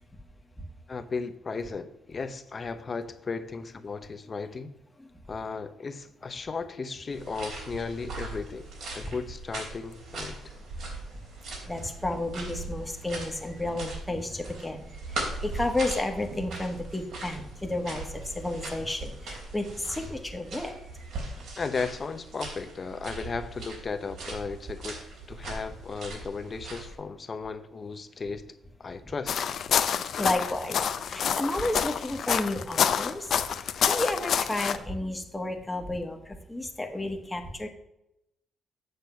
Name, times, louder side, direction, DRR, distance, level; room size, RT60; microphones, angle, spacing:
voice 1, 0.9-4.7 5.3-8.7 8.9-10.5 21.6-25.0 25.3-28.4 28.8-29.5, left 4 dB, 35° left, 10 dB, 0.8 m, -35 dB
sound 1, 7.1-26.9, right 2 dB, 70° right, 3.5 m, -40 dB
voice 2, 11.7-20.8 30.1-37.7, left 1 dB, 10° left, 3 dB, 1.4 m, -32 dB
sound 2, 29.3-34.8, left 8 dB, 60° left, 0.6 m, -27 dB
8.0 x 6.8 x 5.7 m, 0.85 s
cardioid pair, 120°, 0 cm